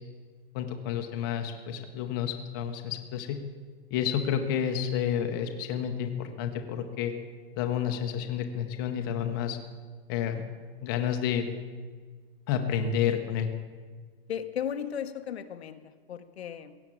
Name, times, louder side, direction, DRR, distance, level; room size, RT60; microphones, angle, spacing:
voice 1, 0.5-3.4 3.9-7.1 7.5-9.6 10.1-10.4 10.8-11.5 12.5-13.5, left 8 dB, 20° left, 5 dB, 0.7 m, -30 dB
voice 2, 14.3-16.8, left 8 dB, 80° left, 9 dB, 1.1 m, -36 dB
17.0 x 7.3 x 8.5 m, 1.5 s
hypercardioid pair, 175°, 31 cm